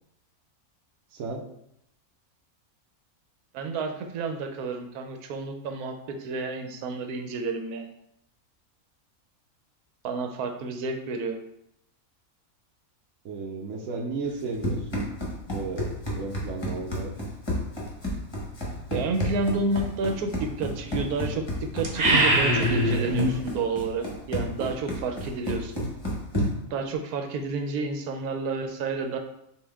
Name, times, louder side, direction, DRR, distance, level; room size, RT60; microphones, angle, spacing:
voice 1, 1.1-1.5 13.2-15.0 15.5-15.9 16.2-17.1, right 4 dB, 65° right, 0 dB, 1.0 m, -34 dB
voice 2, 3.5-7.9 10.0-11.4 18.9-21.4 21.7-25.8 26.7-29.2, right 3 dB, 85° right, 5 dB, 1.1 m, -30 dB
Run, 14.3-26.7, equal, 20° left, 0.9 m, -32 dB
sound 1, 21.8-23.4, right 1 dB, 40° right, 0.6 m, -22 dB
5.6 x 2.5 x 3.4 m, 0.76 s
omnidirectional pair, 1.6 m